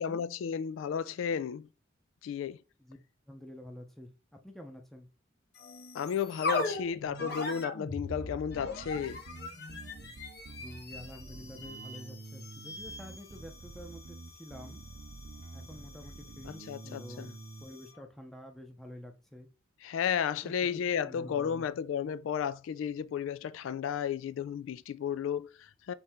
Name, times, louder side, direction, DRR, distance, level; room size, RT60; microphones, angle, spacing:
voice 1, 0.0-1.7 2.2-2.6 5.9-9.2 16.4-17.3 19.8-25.9, left 7 dB, 85° left, 0.3 m, -33 dB
voice 2, 3.3-4.1 4.4-5.1 10.5-14.8 15.5-19.5 20.4-21.7, equal, ahead, 0.6 m, -48 dB
sound 1, 5.5-18.0, left 2 dB, 55° left, 0.9 m, -41 dB
Bass guitar, 8.1-17.6, right 3 dB, 55° right, 0.5 m, -48 dB
3.6 x 3.2 x 4.4 m
head